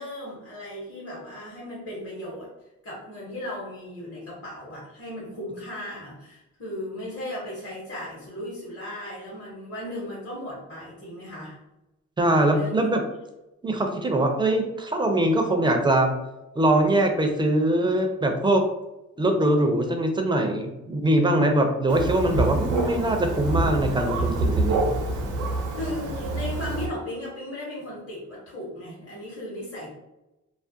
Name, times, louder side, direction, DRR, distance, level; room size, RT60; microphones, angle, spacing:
voice 1, 0.0-2.5 2.8-11.6 12.3-12.9 25.8-29.9, left 1 dB, 40° left, -6 dB, 1.0 m, -36 dB
voice 2, 12.2-13.0 13.6-16.1 16.6-18.6 19.2-24.9, right 1 dB, 15° right, 4 dB, 0.4 m, -22 dB
Thunder, 21.9-26.9, right 2 dB, 90° right, 0.6 m, -26 dB
2.3 x 2.1 x 2.6 m, 0.95 s
cardioid pair, 90°, 30 cm